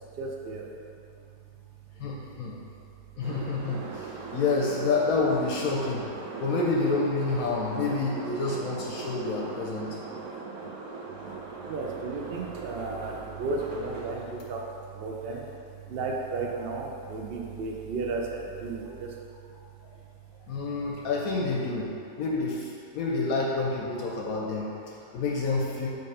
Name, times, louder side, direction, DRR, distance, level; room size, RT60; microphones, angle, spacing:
voice 1, 0.2-0.6 11.7-14.6 14.9-15.4 15.9-19.1, right 3 dB, 85° right, -1 dB, 0.5 m, -33 dB
voice 2, 2.0-2.6 3.2-10.0 20.5-25.9, left 3 dB, 65° left, -2 dB, 1.0 m, -28 dB
London Tube, 3.2-14.3, right 4 dB, 65° right, 1.2 m, -40 dB
5.3 x 3.7 x 5.4 m, 2.6 s
omnidirectional pair, 1.8 m